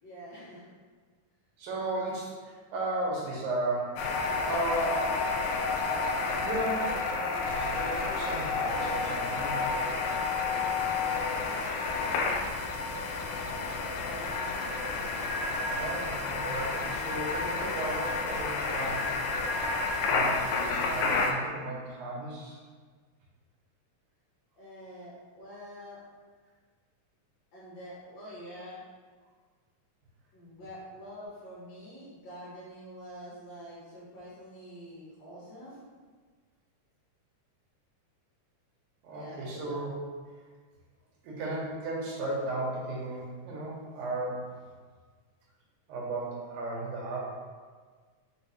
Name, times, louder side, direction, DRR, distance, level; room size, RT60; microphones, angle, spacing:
voice 1, 0.0-0.7 10.9-11.7 13.4-14.8 24.6-26.0 27.5-28.8 30.3-35.8 39.1-39.8, equal, 65° left, -8 dB, 1.8 m, -46 dB
voice 2, 1.6-4.0 4.4-5.2 6.4-9.6 15.7-19.1 20.0-22.6 39.0-39.9 41.2-44.5 45.9-47.2, right 2 dB, 90° right, -3 dB, 2.7 m, -35 dB
sound 1, 4.0-21.3, left 4 dB, 85° left, 2.1 m, -30 dB
6.0 x 2.2 x 4.0 m, 1.5 s
omnidirectional pair, 3.8 m